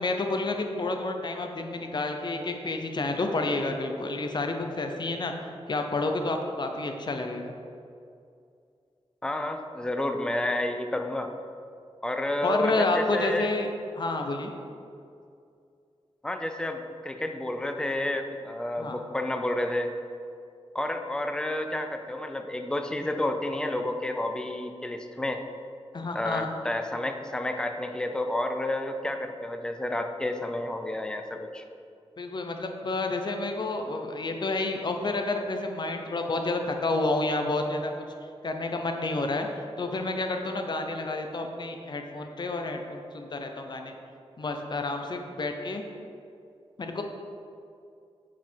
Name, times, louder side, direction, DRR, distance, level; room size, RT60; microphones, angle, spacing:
voice 1, 0.0-5.3 5.7-7.5 12.4-13.7 13.9-14.5 18.8-19.0 25.9-26.5 32.2-37.9 38.4-39.5 39.8-43.9 44.4-45.8 46.8-47.0, left 2 dB, 45° left, 4 dB, 0.7 m, -29 dB
voice 2, 9.2-11.3 12.0-13.5 16.2-19.9 20.7-25.4 26.1-31.6, left 1 dB, 5° left, 5 dB, 0.5 m, -30 dB
9.1 x 4.9 x 4.5 m, 2.4 s
wide cardioid pair, 135°, 11 cm